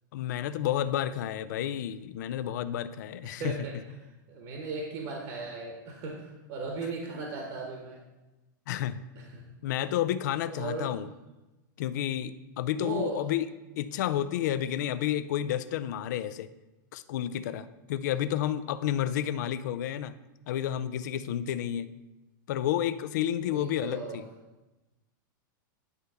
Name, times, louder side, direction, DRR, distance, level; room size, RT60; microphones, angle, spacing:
voice 1, 0.1-3.7 8.7-9.0 9.6-11.1 11.8-13.5 13.8-16.5 16.9-20.1 20.5-21.9 22.5-24.2, left 11 dB, 60° left, 13 dB, 0.4 m, -30 dB
voice 2, 3.3-3.8 4.3-8.0 9.3-9.4 10.5-10.9 12.8-13.3 23.4-24.2, right 3 dB, 35° right, 1 dB, 1.0 m, -37 dB
9.7 x 3.5 x 5.4 m, 1.0 s
supercardioid pair, 170°, 11 cm